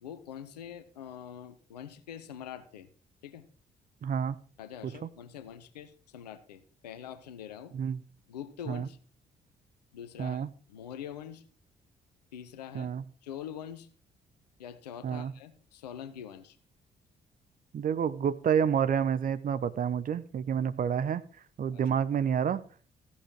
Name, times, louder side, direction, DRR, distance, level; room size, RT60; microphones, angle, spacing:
voice 1, 0.0-2.9 3.2-3.5 4.6-7.7 8.3-9.0 9.9-10.4 10.7-11.4 12.3-12.9 13.2-13.9 14.6-16.6 21.7-21.8, left 9 dB, 80° left, 13 dB, 0.9 m, -44 dB
voice 2, 4.0-4.4 7.7-8.0 8.7-8.9 10.2-10.5 12.7-13.0 15.0-15.3 17.7-21.2 21.6-22.6, right 8 dB, 45° right, 15 dB, 0.8 m, -29 dB
14.5 x 8.6 x 4.7 m, 0.40 s
figure-of-eight pair, 45°, 21 cm